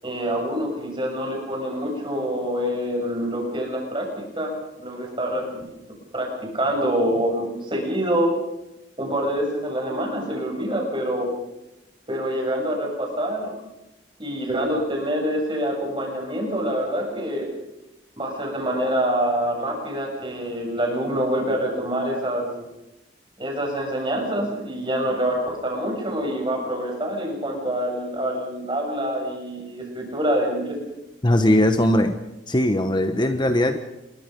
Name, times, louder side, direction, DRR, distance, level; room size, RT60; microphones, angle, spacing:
voice 1, 0.0-5.8 6.1-8.3 9.0-11.3 12.1-13.5 14.2-17.5 18.2-22.7 23.4-30.8, equal, 25° right, 1 dB, 7.3 m, -26 dB
voice 2, 31.2-32.2 32.5-33.8, left 1 dB, 25° left, 8 dB, 1.1 m, -19 dB
27.5 x 22.5 x 5.3 m, 0.92 s
head